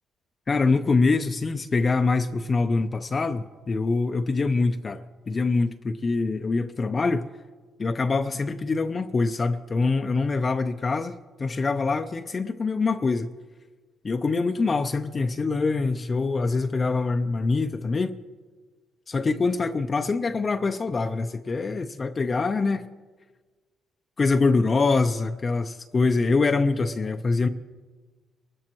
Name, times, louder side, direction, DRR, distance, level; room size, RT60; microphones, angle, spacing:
voice 1, 0.5-7.3 7.8-13.3 14.0-18.2 19.1-22.9 24.2-27.5, left 3 dB, 35° left, 0.5 m, -24 dB
24.0 x 12.5 x 3.0 m
cardioid pair, 90°, 0 cm